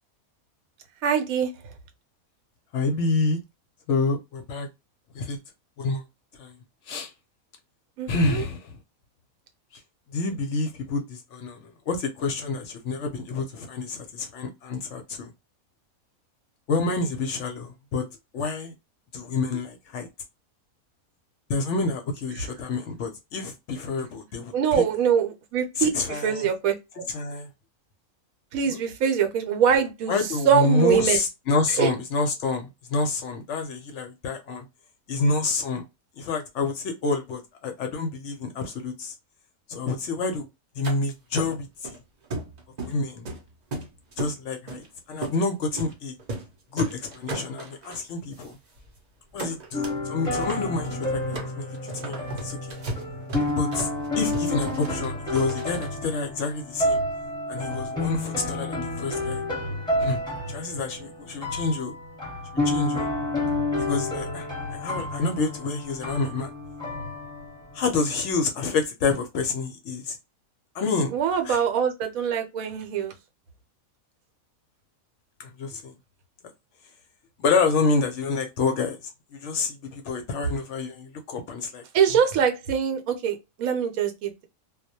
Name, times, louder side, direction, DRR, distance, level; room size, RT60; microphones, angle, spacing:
voice 1, 1.0-1.5 8.0-8.4 22.4-22.5 24.5-26.7 28.5-31.2 31.8-31.9 71.1-73.1 81.9-84.4, right 7 dB, 75° right, 1.0 m, -23 dB
voice 2, 2.7-3.4 3.9-4.7 5.1-5.4 5.8-6.0 6.4-6.5 6.9-7.1 8.1-8.7 10.1-15.3 16.7-18.0 18.3-18.7 19.1-20.1 21.5-24.8 25.8-26.5 27.1-27.5 28.7-28.8 30.1-34.6 35.1-35.8 36.2-39.1 39.7-40.5 40.8-42.0 42.8-43.3 44.2-46.1 46.7-48.6 49.3-51.7 52.0-52.6 53.6-53.9 54.2-57.0 57.5-59.4 60.0-60.2 60.5-61.9 62.6-63.0 63.8-66.5 67.7-70.2 70.7-71.1 71.4-71.6 75.4-75.9 77.4-81.8, left 3 dB, 65° left, 0.8 m, -28 dB
sound 1, 40.8-41.0 41.4-42.0 42.3-43.0 43.2-44.3 44.7-44.9 45.2-45.4 45.8-45.9 46.2-46.5 46.8-48.0 48.4-48.5 48.8-49.0 49.4-50.0 50.2-55.9, right 2 dB, 45° right, 0.5 m, -35 dB
sound 2, 49.7-68.3, left 1 dB, 5° left, 0.8 m, -30 dB
2.3 x 2.1 x 2.7 m
omnidirectional pair, 1.5 m